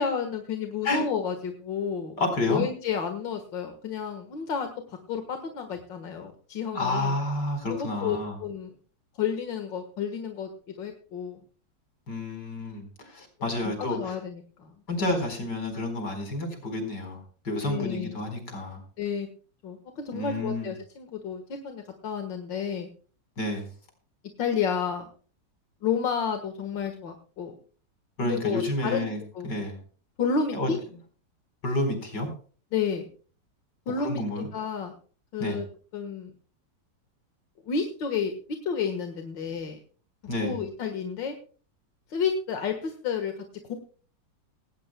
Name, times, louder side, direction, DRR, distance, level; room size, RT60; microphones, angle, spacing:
voice 1, 0.0-2.2 2.5-7.2 7.7-8.7 9.2-10.5 10.8-11.4 13.4-14.7 17.6-18.2 19.0-19.3 19.6-22.9 24.4-25.0 25.8-27.5 28.2-29.1 29.3-29.5 30.2-30.8 32.7-33.1 33.9-34.9 35.3-35.7 35.9-36.3 37.6-38.3 38.6-39.8 40.4-41.4 42.1-43.3 43.7-43.8, left 6 dB, 90° left, 5 dB, 2.3 m, -31 dB
voice 2, 2.2-2.6 6.7-8.4 12.1-14.2 14.9-18.8 20.1-20.7 23.4-23.7 28.2-29.2 29.4-29.8 30.5-30.7 31.6-32.3 34.0-34.5 35.4-35.6 40.3-40.6, left 1 dB, 70° left, 5 dB, 5.1 m, -30 dB
19.0 x 17.5 x 2.2 m, 0.41 s
omnidirectional pair, 1.9 m